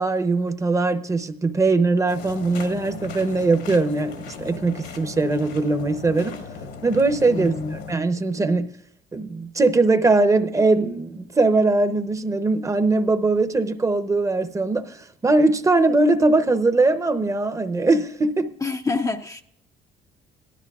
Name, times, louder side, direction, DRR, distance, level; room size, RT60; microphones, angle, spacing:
voice 1, 0.0-6.4 6.8-8.7 9.1-18.5, right 3 dB, 20° right, 0.7 m, -21 dB
sound 1, 2.1-8.0, left 5 dB, 70° left, 1.4 m, -37 dB
voice 2, 7.3-7.8 18.6-19.4, left 4 dB, 20° left, 0.5 m, -27 dB
17.5 x 12.5 x 2.4 m
cardioid pair, 110°, 17 cm